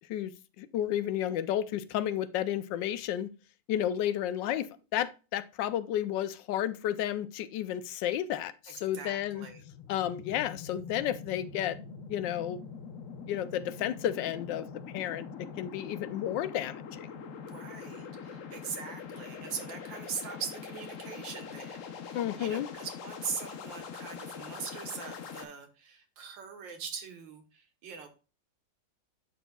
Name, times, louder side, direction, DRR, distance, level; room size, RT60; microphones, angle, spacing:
voice 1, 0.6-3.3 3.7-9.5 9.9-11.8 12.1-12.6 13.3-14.7 14.9-17.1 22.1-22.7, left 11 dB, 80° left, 14 dB, 1.3 m, -32 dB
voice 2, 8.7-9.6 17.4-28.1, right 6 dB, 80° right, 6 dB, 1.9 m, -41 dB
sound 1, 9.0-25.4, left 6 dB, 60° left, 0.9 m, -44 dB
11.0 x 4.4 x 2.3 m, 0.33 s
omnidirectional pair, 2.0 m